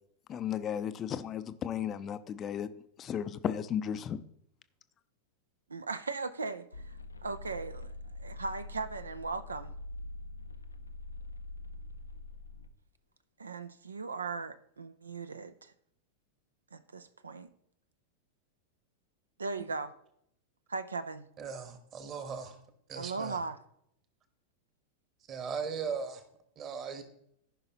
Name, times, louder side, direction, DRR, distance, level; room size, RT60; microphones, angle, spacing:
voice 1, 0.3-2.7 3.0-4.2, left 9 dB, 30° left, 0.5 m, -34 dB
voice 2, 5.7-6.9 7.2-7.9 8.2-9.7 13.4-15.7 16.7-17.5 19.4-19.9 20.7-21.3 23.0-23.6, right 4 dB, 75° right, 0.4 m, -38 dB
sound 1, 6.7-12.7, left 2 dB, 80° left, 0.6 m, -44 dB
voice 3, 21.4-22.6 22.9-23.4 25.3-26.2 26.6-27.0, right 6 dB, 30° right, 1.3 m, -38 dB
14.5 x 5.5 x 2.9 m
figure-of-eight pair, 90°, 0 cm